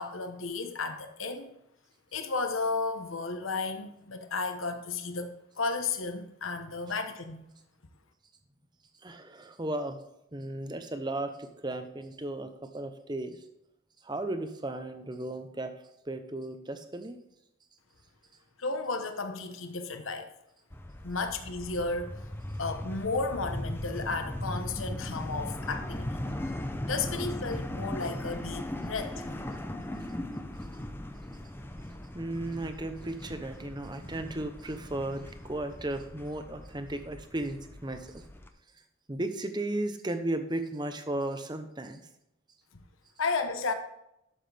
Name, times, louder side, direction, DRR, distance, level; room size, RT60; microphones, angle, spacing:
voice 1, 0.0-1.6 2.1-7.5 18.6-20.3 21.0-22.1 22.6-26.1 26.9-29.3 42.7-42.8 43.2-43.7, left 3 dB, 75° left, 1.0 m, -33 dB
voice 2, 9.0-10.0 10.3-13.4 14.0-15.7 16.1-17.2 32.1-38.2 39.1-42.0, right 1 dB, 20° right, 0.8 m, -35 dB
sound 1, 20.7-38.5, left 1 dB, 10° left, 0.6 m, -38 dB
11.5 x 7.3 x 3.4 m
head